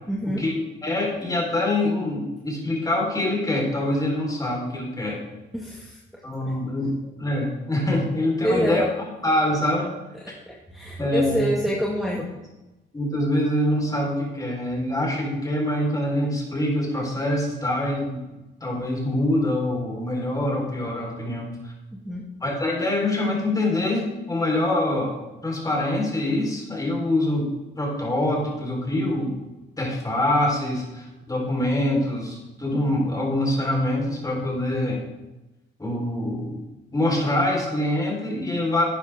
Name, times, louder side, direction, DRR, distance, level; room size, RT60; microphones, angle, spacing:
voice 1, 0.1-0.4 5.5-6.0 6.4-6.5 8.4-8.8 10.2-12.2 22.0-22.2, equal, ahead, -3 dB, 1.8 m, -26 dB
voice 2, 0.8-5.2 6.2-8.8 9.2-9.9 11.0-11.6 12.9-18.2 18.6-21.7 22.4-25.2 25.4-27.5 27.8-29.4 29.8-35.0 35.8-36.6 36.9-38.8, left 1 dB, 15° left, -2 dB, 4.2 m, -25 dB
11.5 x 9.6 x 3.6 m, 1.0 s
cardioid pair, 90°, 20 cm